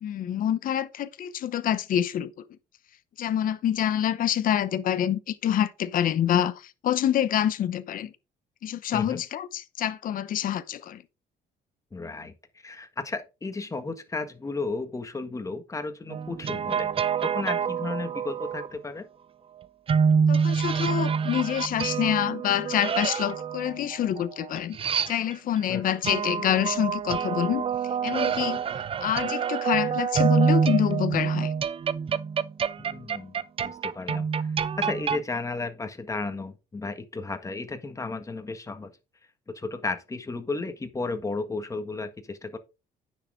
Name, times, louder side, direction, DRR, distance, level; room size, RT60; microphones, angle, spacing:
voice 1, 0.0-2.3 3.2-8.1 8.6-11.0 20.3-24.8 25.1-27.6 28.0-28.6 29.0-31.5, left 10 dB, 55° left, 0.9 m, -26 dB
voice 2, 11.9-12.3 12.6-16.9 17.2-19.1 25.7-25.8 32.8-33.3 33.6-34.3 34.8-38.9 39.5-42.6, left 3 dB, 20° left, 1.6 m, -33 dB
sound 1, 16.1-18.7 19.9-25.6 26.0-35.2, right 6 dB, 35° right, 0.6 m, -26 dB
9.7 x 6.6 x 3.7 m
cardioid pair, 110°, 17 cm